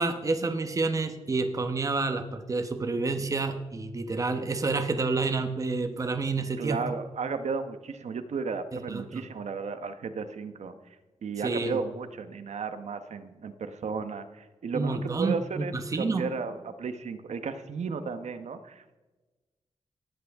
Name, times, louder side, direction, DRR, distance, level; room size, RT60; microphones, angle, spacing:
voice 1, 0.0-7.0 8.9-9.2 11.4-11.8 14.7-16.2, right 3 dB, 30° right, 7 dB, 1.0 m, -29 dB
voice 2, 6.6-10.7 11.2-18.8, right 5 dB, 75° right, 10 dB, 1.1 m, -34 dB
18.0 x 13.5 x 3.6 m, 1.2 s
wide cardioid pair, 180°, 12 cm